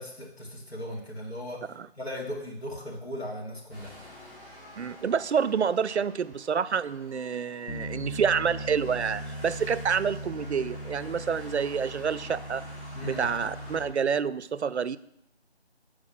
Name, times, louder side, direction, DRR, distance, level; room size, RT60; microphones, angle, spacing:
voice 1, 0.0-3.9 12.9-13.5, left 1 dB, 65° left, -1 dB, 2.2 m, -38 dB
sound 1, 3.7-13.8, left 1 dB, 5° left, 3.5 m, -48 dB
voice 2, 4.8-12.6 13.0-15.0, right 6 dB, 80° right, 16 dB, 0.5 m, -28 dB
Bass guitar, 7.7-13.9, equal, 50° left, 0.8 m, -39 dB
7.0 x 4.8 x 5.8 m, 0.76 s
figure-of-eight pair, 165°, 33 cm